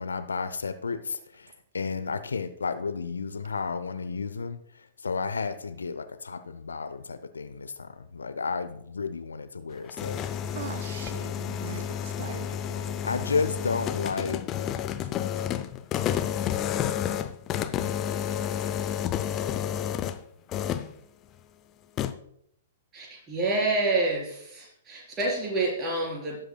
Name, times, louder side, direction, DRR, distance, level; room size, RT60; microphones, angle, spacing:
voice 1, 0.0-4.6 5.0-10.2 12.7-14.4, left 4 dB, 70° left, 0.7 m, -32 dB
sound 1, 9.7-20.2 20.5-20.9 22.0-22.1, left 9 dB, 25° left, 0.6 m, -30 dB
voice 2, 10.5-12.9, right 8 dB, 55° right, 0.5 m, -41 dB
voice 3, 22.9-26.4, right 2 dB, 20° right, 4.3 m, -28 dB
18.0 x 7.9 x 2.3 m
figure-of-eight pair, 110°, 0 cm